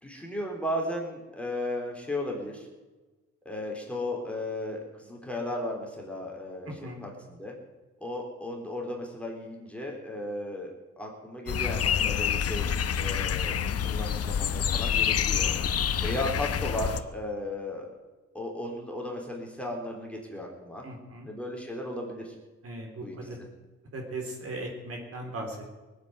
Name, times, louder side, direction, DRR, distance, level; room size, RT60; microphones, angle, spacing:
voice 1, 0.0-2.7 3.5-7.5 8.0-10.7 11.0-13.5 13.8-15.5 16.0-17.9 18.3-20.8 21.2-22.3 23.0-23.1, left 1 dB, 5° left, -1 dB, 3.8 m, -35 dB
voice 2, 6.7-7.0 20.8-21.3 22.6-23.4 23.9-25.6, right 1 dB, 50° right, 1 dB, 4.0 m, -38 dB
sound 1, 11.5-17.0, left 8 dB, 50° left, 1.0 m, -27 dB
19.0 x 8.2 x 9.4 m, 1.2 s
cardioid pair, 90°, 30 cm